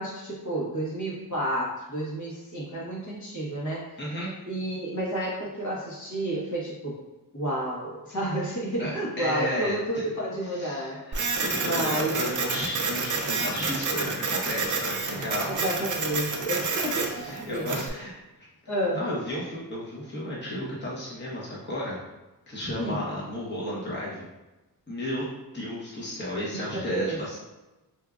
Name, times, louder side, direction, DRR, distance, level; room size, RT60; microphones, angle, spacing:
voice 1, 0.0-3.9 4.5-7.0 7.3-11.0 11.3-12.3 15.4-17.7 18.7-19.0 22.7-23.0 26.5-27.4, right 1 dB, 45° left, -5 dB, 1.2 m, -31 dB
voice 2, 4.0-4.4 8.8-8.9 9.2-10.0 10.4-15.5 16.0-16.1 17.1-18.5 18.9-22.0 22.5-24.3 24.9-25.3 25.5-27.4, left 1 dB, 25° left, -6 dB, 1.1 m, -33 dB
Printer, 11.1-17.9, right 4 dB, 50° right, 0.6 m, -29 dB
4.5 x 2.4 x 2.4 m, 1.1 s
cardioid pair, 65°, 40 cm